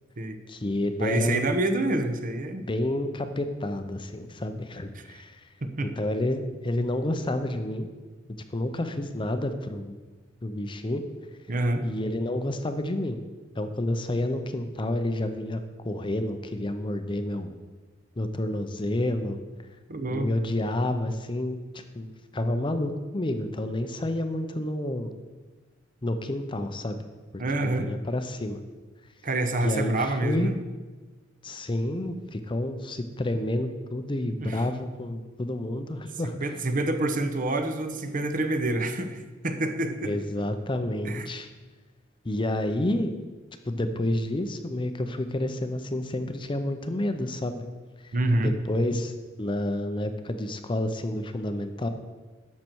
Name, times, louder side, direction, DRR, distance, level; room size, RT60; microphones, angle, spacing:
voice 1, 0.5-1.5 2.6-5.4 5.8-7.9 8.5-10.0 10.4-11.0 11.8-13.2 13.6-17.5 18.2-19.4 20.1-21.6 21.9-25.1 26.0-27.0 27.3-28.6 29.6-30.5 31.4-36.3 40.0-41.5 42.2-43.1 43.7-47.6 48.0-48.2 48.4-49.1 49.4-51.9, left 1 dB, 25° left, 8 dB, 0.6 m, -29 dB
voice 2, 1.0-2.7 4.9-5.0 5.6-5.9 11.5-11.9 19.9-20.3 27.4-27.9 29.2-30.6 34.4-34.6 36.2-40.1 41.0-41.3 48.1-48.8, right 2 dB, 45° right, 7 dB, 0.9 m, -27 dB
11.5 x 7.5 x 4.6 m, 1.3 s
head